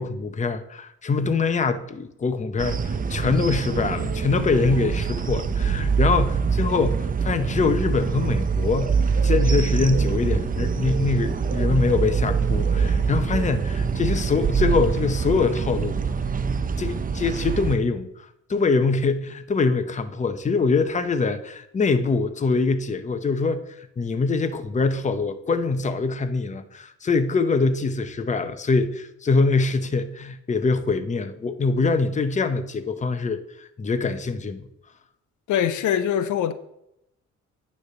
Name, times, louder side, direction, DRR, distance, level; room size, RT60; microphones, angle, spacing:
voice 1, 0.0-16.0 16.8-18.1 18.5-34.7, left 4 dB, 25° left, 0.7 m, -24 dB
sound 1, 2.6-17.8, right 5 dB, 30° right, 0.6 m, -24 dB
voice 2, 35.5-36.5, left 9 dB, 80° left, 0.7 m, -23 dB
9.5 x 3.3 x 6.6 m
cardioid pair, 90°, 30 cm